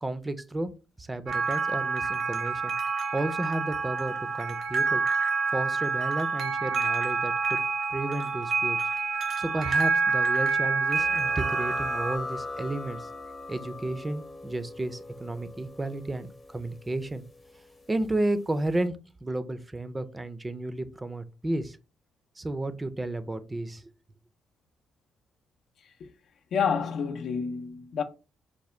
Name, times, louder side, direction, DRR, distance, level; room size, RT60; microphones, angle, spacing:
voice 1, 0.0-0.7 1.0-2.7 3.1-5.0 5.5-7.6 7.9-8.8 9.4-13.1 13.5-17.2 17.9-19.0 19.2-21.8 22.4-23.9, right 2 dB, 20° right, 0.5 m, -32 dB
sound 1, 1.3-12.2, right 4 dB, 55° right, 0.8 m, -27 dB
sound 2, 10.9-18.2, left 3 dB, 25° left, 0.7 m, -40 dB
voice 2, 26.5-28.0, left 6 dB, 65° left, 0.5 m, -28 dB
4.8 x 2.2 x 3.2 m
cardioid pair, 90°, 0 cm